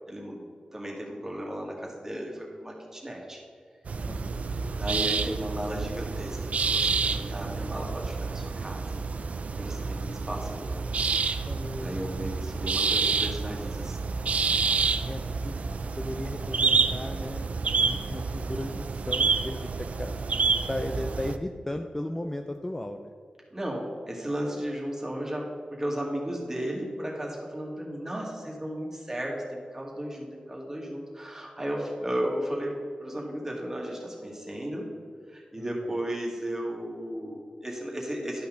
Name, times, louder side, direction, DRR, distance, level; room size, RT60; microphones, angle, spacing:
voice 1, 0.1-0.5 0.7-3.4 4.8-9.3 9.6-10.9 11.8-14.2 23.5-34.9 35.3-38.5, equal, 20° right, -2 dB, 2.0 m, -35 dB
sound 1, 3.8-21.4, right 4 dB, 65° right, 0.4 m, -29 dB
voice 2, 4.1-4.4 11.5-12.0 14.7-20.3 20.7-23.1 35.5-36.0, left 1 dB, 15° left, 5 dB, 0.4 m, -36 dB
11.5 x 5.6 x 3.9 m, 2.2 s
wide cardioid pair, 100°, 2 cm